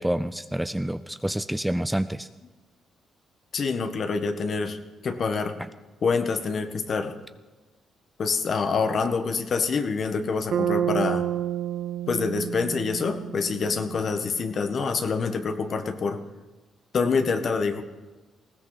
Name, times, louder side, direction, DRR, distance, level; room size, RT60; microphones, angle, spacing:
voice 1, 0.0-2.3, right 1 dB, 5° right, 12 dB, 0.5 m, -28 dB
voice 2, 3.5-5.6 6.0-7.2 8.2-11.2 12.1-16.2 16.9-17.8, left 5 dB, 50° left, 8 dB, 1.5 m, -26 dB
Bass guitar, 10.5-14.6, right 10 dB, 65° right, 1.1 m, -29 dB
19.5 x 16.5 x 4.1 m, 1.2 s
cardioid pair, 90°, 0 cm